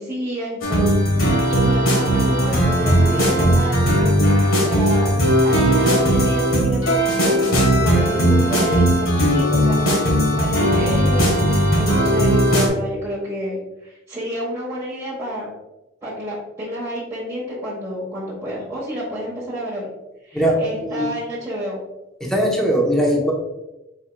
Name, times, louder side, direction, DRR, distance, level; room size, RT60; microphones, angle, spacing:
voice 1, 0.0-5.1 5.4-15.5 16.0-19.9 20.2-21.8, equal, 15° right, -8 dB, 1.2 m, -29 dB
sound 1, 0.6-12.7, equal, 90° left, 1.4 m, -17 dB
voice 2, 20.3-21.1 22.2-23.3, equal, 5° left, -2 dB, 0.9 m, -20 dB
4.5 x 4.4 x 2.2 m, 0.97 s
head